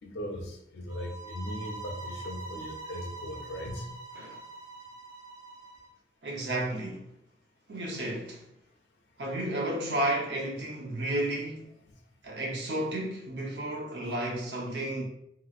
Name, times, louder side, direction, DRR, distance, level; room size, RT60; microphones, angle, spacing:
voice 1, 0.0-3.9, equal, 90° left, 0.7 m, -38 dB
sound 1, 0.9-5.9, right 3 dB, 20° right, 0.6 m, -44 dB
voice 2, 6.2-7.1 7.7-8.4 9.2-11.7 12.2-15.0, right 1 dB, 80° right, 0.8 m, -32 dB
3.0 x 2.9 x 2.4 m
head